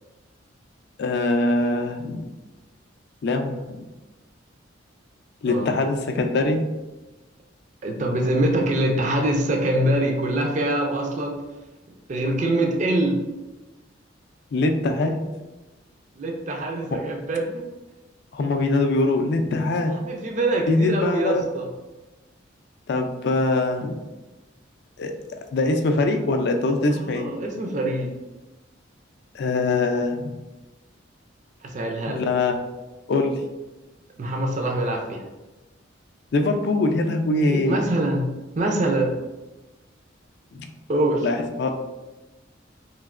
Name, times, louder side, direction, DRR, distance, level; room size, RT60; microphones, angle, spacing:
voice 1, 1.0-2.2 3.2-3.9 5.4-6.6 14.5-15.2 18.3-19.9 20.7-21.5 22.9-23.9 25.0-25.1 25.5-27.3 29.3-30.3 32.1-32.5 33.1-33.4 36.3-37.8 40.5-40.7 41.2-41.7, left 2 dB, 55° left, 5 dB, 0.3 m, -23 dB
voice 2, 7.8-11.4 12.1-13.2 16.2-17.6 20.0-21.7 26.9-28.2 31.6-32.2 34.2-35.2 37.4-38.3 38.5-39.2 40.9-41.3, right 1 dB, 40° right, 1 dB, 0.4 m, -24 dB
3.1 x 2.8 x 2.4 m, 1.1 s
head